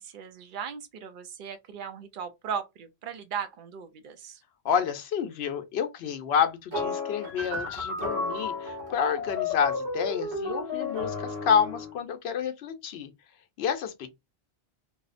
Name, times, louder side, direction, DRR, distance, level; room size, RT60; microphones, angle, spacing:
voice 1, 0.0-4.4, right 7 dB, 60° right, 0.6 m, -37 dB
voice 2, 4.6-13.1 13.6-14.1, left 7 dB, 75° left, 0.8 m, -29 dB
sound 1, 6.7-11.9, left 3 dB, 85° right, 1.3 m, -32 dB
2.7 x 2.0 x 2.4 m
omnidirectional pair, 1.1 m